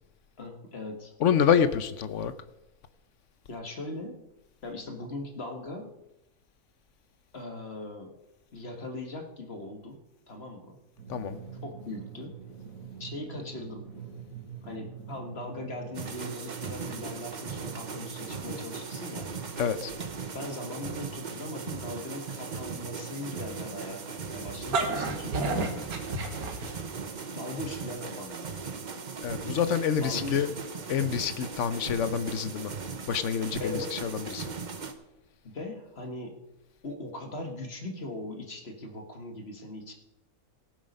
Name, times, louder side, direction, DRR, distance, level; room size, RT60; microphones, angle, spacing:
voice 1, 0.4-1.1 3.5-4.3 4.6-6.0 7.3-8.2 8.5-10.0 10.3-10.8 11.6-12.4 13.0-13.9 14.6-19.3 20.3-25.9 27.3-28.7 30.0-30.6 33.6-34.0 35.4-36.4 36.8-39.9, left 2 dB, 45° left, 4 dB, 1.8 m, -39 dB
voice 2, 1.2-2.3 11.1-11.4 19.6-19.9 29.2-30.5 30.9-32.7 33.1-34.5, left 7 dB, 60° left, 13 dB, 1.0 m, -27 dB
Drum, 11.0-27.2, right 7 dB, 65° right, 2.7 m, -47 dB
sound 1, 15.9-34.9, right 5 dB, 35° right, 0.9 m, -39 dB
sound 2, 24.5-27.1, right 3 dB, 85° right, 1.9 m, -30 dB
17.0 x 7.4 x 5.4 m, 0.92 s
omnidirectional pair, 1.5 m